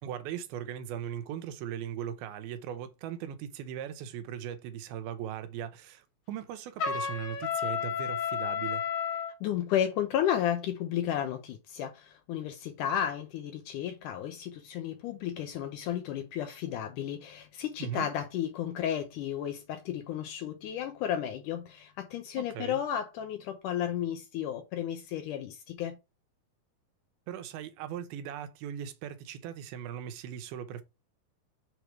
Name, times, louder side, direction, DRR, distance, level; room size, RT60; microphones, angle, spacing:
voice 1, 0.0-8.8 17.8-18.1 22.4-22.8 27.3-30.8, right 9 dB, 85° right, 2.6 m, -39 dB
Trumpet, 6.8-9.3, left 7 dB, 55° left, 1.4 m, -32 dB
voice 2, 9.4-26.0, left 10 dB, 75° left, 2.0 m, -33 dB
6.6 x 3.1 x 4.6 m
omnidirectional pair, 4.2 m